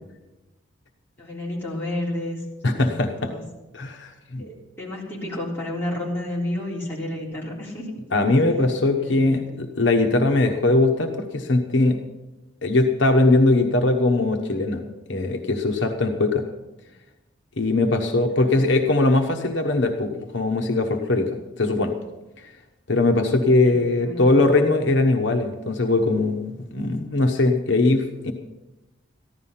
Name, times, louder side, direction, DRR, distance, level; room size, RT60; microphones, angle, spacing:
voice 1, 1.2-3.4 4.4-7.9 8.5-8.6 9.0-9.6 18.3-18.6 23.6-24.3, left 1 dB, 10° left, -5 dB, 3.5 m, -31 dB
voice 2, 2.6-3.3 3.7-4.4 8.1-12.0 12.6-14.8 15.1-16.4 17.6-21.3 21.6-21.9 22.4-22.5 22.9-28.3, left 2 dB, 70° left, 4 dB, 1.1 m, -20 dB
15.0 x 11.5 x 5.7 m, 1.0 s
head